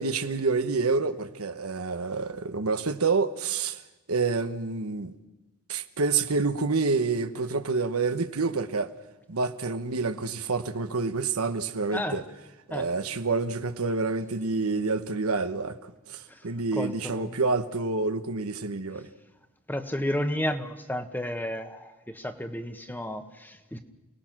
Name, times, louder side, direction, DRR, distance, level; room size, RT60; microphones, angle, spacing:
voice 1, 0.0-3.8 4.1-5.1 5.7-8.9 9.3-12.2 12.7-15.8 16.1-19.1, right 4 dB, 85° right, 1.2 m, -28 dB
voice 2, 16.7-17.4 19.7-23.8, left 1 dB, 10° left, 1.2 m, -32 dB
29.0 x 19.0 x 6.1 m
head